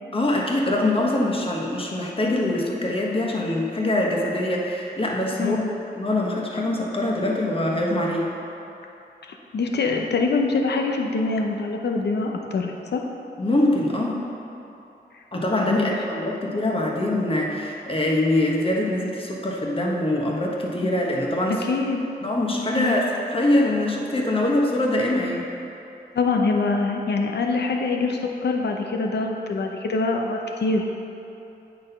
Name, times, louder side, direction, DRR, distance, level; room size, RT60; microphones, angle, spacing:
voice 1, 0.1-5.6 6.0-8.3 9.9-10.0 13.4-14.3 15.3-21.6 22.2-25.5, left 1 dB, 30° left, -2 dB, 1.3 m, -23 dB
voice 2, 9.5-13.1 15.7-15.9 20.8-20.9 21.7-22.0 22.8-23.0 26.1-30.8, left 3 dB, 75° left, 2 dB, 0.8 m, -24 dB
8.6 x 4.2 x 5.5 m, 2.9 s
cardioid pair, 60°, 18 cm